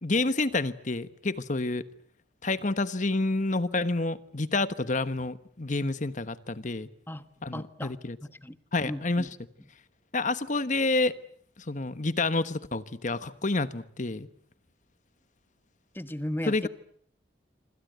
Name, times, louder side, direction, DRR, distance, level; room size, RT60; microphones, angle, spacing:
voice 1, 0.0-1.8 2.4-6.9 7.4-8.2 8.7-9.3 10.1-11.1 11.7-14.3 16.5-16.7, left 2 dB, 45° left, 14 dB, 1.3 m, -28 dB
voice 2, 7.5-7.9 8.2-8.6 8.8-9.3 15.9-16.7, left 1 dB, 10° left, 12 dB, 1.3 m, -35 dB
26.5 x 26.0 x 8.1 m, 0.62 s
head